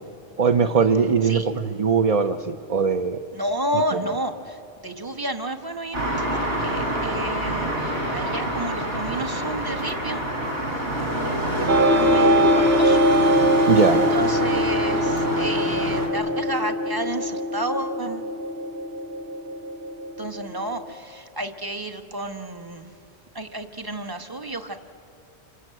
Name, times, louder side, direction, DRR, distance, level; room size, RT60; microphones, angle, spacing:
voice 1, 0.4-3.2 13.7-14.0, right 6 dB, 40° right, 6 dB, 0.7 m, -20 dB
voice 2, 3.3-10.2 11.0-13.2 13.4-18.3 20.2-22.9 23.3-24.8, right 1 dB, 20° right, 6 dB, 1.2 m, -31 dB
sound 1, 5.9-16.1, right 1 dB, 85° right, 3.9 m, -27 dB
sound 2, 11.7-20.9, equal, 65° right, 1.4 m, -22 dB
27.5 x 26.0 x 7.7 m, 2.7 s
omnidirectional pair, 1.1 m